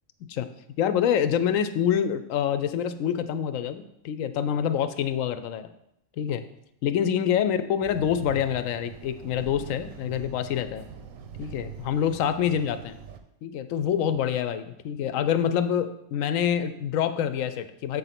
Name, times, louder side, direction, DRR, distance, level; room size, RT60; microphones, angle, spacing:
voice 1, 0.8-5.7 6.2-6.4 6.8-10.8 11.4-13.0 13.4-18.0, left 9 dB, 85° left, 11 dB, 1.0 m, -26 dB
sound 1, 7.8-13.2, right 7 dB, 85° right, 1.1 m, -43 dB
7.3 x 4.0 x 5.8 m, 0.78 s
omnidirectional pair, 1.4 m